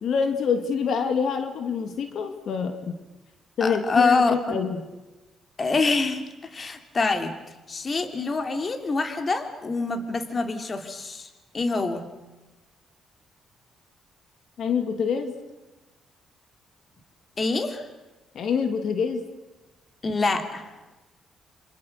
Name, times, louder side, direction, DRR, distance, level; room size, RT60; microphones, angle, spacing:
voice 1, 0.0-3.0 3.6-4.8 14.6-15.3 18.3-19.2, left 6 dB, 65° left, 7 dB, 2.5 m, -26 dB
voice 2, 3.6-4.3 5.6-6.2 6.5-7.3 7.7-11.3 11.5-12.0 17.4-17.8 20.0-20.7, left 3 dB, 35° left, 7 dB, 2.8 m, -25 dB
27.5 x 26.0 x 6.7 m, 1.1 s
cardioid pair, 90°, 0 cm